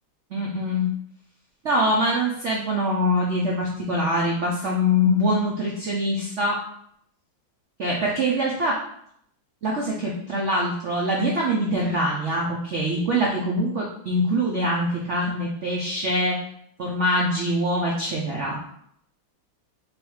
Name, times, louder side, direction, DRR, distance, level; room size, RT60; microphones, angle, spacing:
voice 1, 0.3-0.9 1.6-6.6 7.8-8.8 9.6-16.4 16.8-18.6, equal, 75° right, -3 dB, 0.6 m, -24 dB
3.3 x 3.1 x 4.7 m, 0.70 s
omnidirectional pair, 2.1 m